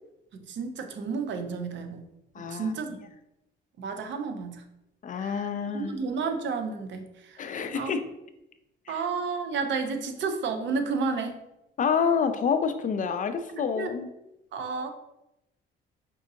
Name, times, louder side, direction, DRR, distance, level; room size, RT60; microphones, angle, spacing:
voice 1, 0.5-2.0 2.4-3.0 3.8-4.6 5.1-5.5 5.7-7.4 7.7-7.9 8.9-11.4 13.5-13.9 14.5-14.9, right 4 dB, 65° right, 7 dB, 0.6 m, -31 dB
voice 2, 2.4-2.7 5.0-6.0 7.4-8.0 8.9-9.0 11.8-14.1, left 6 dB, 40° left, 9 dB, 0.4 m, -28 dB
5.1 x 2.7 x 2.6 m, 0.89 s
cardioid pair, 90°, 20 cm